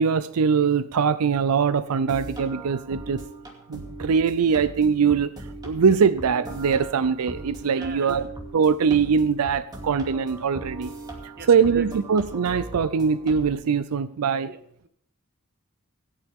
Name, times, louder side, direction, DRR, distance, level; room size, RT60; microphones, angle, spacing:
voice 1, 0.0-3.2 3.7-5.3 5.6-8.3 8.5-10.9 11.2-14.5, right 6 dB, 90° right, 14 dB, 0.5 m, -22 dB
sound 1, 1.8-13.6, right 2 dB, 20° right, 2.5 m, -39 dB
voice 2, 7.7-8.3 11.4-11.9 14.5-14.9, right 5 dB, 45° right, 10 dB, 1.1 m, -42 dB
26.0 x 8.8 x 3.6 m, 0.67 s
head